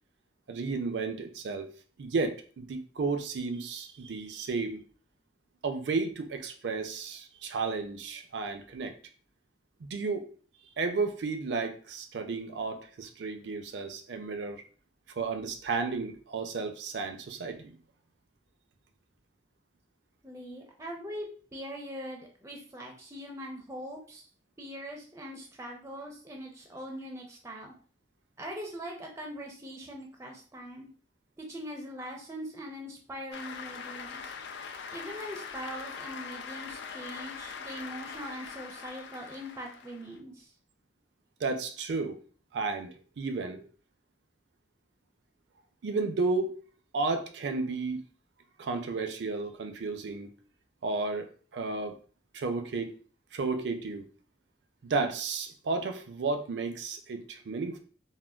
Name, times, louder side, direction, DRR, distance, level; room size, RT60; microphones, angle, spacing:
voice 1, 0.5-1.7 2.0-4.8 5.6-8.9 9.8-10.3 10.8-14.6 15.2-17.8 41.4-42.2 42.5-43.7 45.8-46.6 46.9-48.0 48.6-50.3 50.8-51.3 51.5-52.0 52.3-52.9 53.3-54.1 54.8-57.8, right 4 dB, 70° right, 7 dB, 0.4 m, -33 dB
voice 2, 20.2-21.3 21.5-24.3 24.6-27.7 28.4-30.9 31.4-34.3 34.9-40.5, equal, 15° right, 1 dB, 0.5 m, -42 dB
Cheering / Applause, 33.3-40.2, left 6 dB, 70° left, 0.4 m, -42 dB
3.6 x 2.2 x 2.2 m, 0.41 s
head